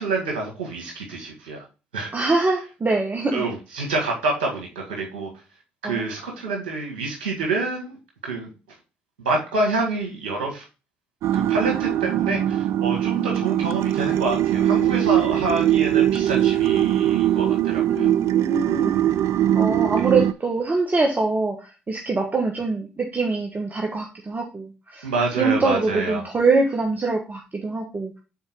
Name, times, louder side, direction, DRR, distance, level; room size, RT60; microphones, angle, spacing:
voice 1, 0.0-1.6 1.9-2.1 3.3-5.3 5.8-8.0 8.2-8.5 9.2-10.7 11.3-18.1 25.0-26.3, right 3 dB, 85° right, 0 dB, 1.8 m, -27 dB
voice 2, 2.1-3.4 5.8-6.1 17.9-18.9 19.5-25.1 25.4-28.2, right 3 dB, 30° right, 1 dB, 1.3 m, -24 dB
sound 1, 11.2-20.3, right 12 dB, 65° right, 0.3 m, -21 dB
5.8 x 4.3 x 4.5 m, 0.31 s
hypercardioid pair, 50°, 5 cm